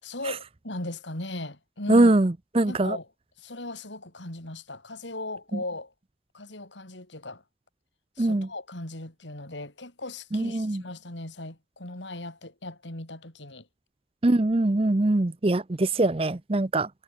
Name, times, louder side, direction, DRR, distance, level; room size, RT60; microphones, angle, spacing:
voice 1, 0.0-2.1 2.7-3.1 3.4-5.9 6.3-7.4 8.2-13.7, left 2 dB, 85° left, 5.8 m, -38 dB
voice 2, 1.9-3.0 8.2-8.5 10.3-10.8 14.2-16.9, right 2 dB, 30° right, 0.6 m, -22 dB
head